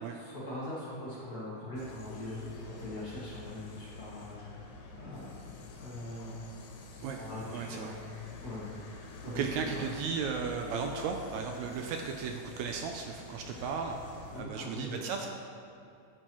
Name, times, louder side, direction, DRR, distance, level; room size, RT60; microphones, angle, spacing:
voice 1, 0.1-4.6 4.9-5.3 5.8-6.4 7.1-8.0 8.4-8.7 9.2-9.9 14.3-15.1, left 1 dB, 60° left, -7 dB, 0.9 m, -41 dB
sound 1, 1.8-14.4, left 4 dB, 75° left, 2.3 m, -47 dB
voice 2, 7.0-7.9 9.2-14.0 14.3-15.3, right 6 dB, 80° right, 3 dB, 1.7 m, -35 dB
9.3 x 8.6 x 3.0 m, 2.7 s
omnidirectional pair, 3.5 m